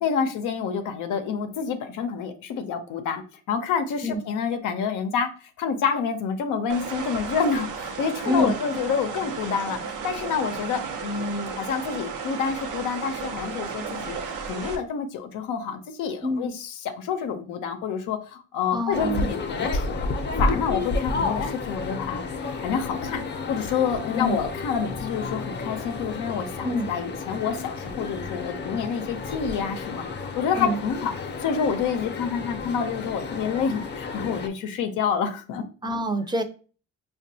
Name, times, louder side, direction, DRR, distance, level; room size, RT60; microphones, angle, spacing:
voice 1, 0.0-5.3 5.6-31.1 31.4-35.6, left 6 dB, 90° left, 6 dB, 0.6 m, -28 dB
sound 1, 6.7-14.8, right 5 dB, 85° right, 0.7 m, -34 dB
voice 2, 18.7-19.3 24.1-24.4 26.6-26.9 30.6-30.8 35.8-36.4, left 1 dB, 15° right, 7 dB, 0.5 m, -26 dB
sound 2, 18.9-34.5, left 3 dB, 35° left, 0.6 m, -31 dB
5.2 x 2.3 x 2.7 m, 0.37 s
cardioid pair, 90°, 30 cm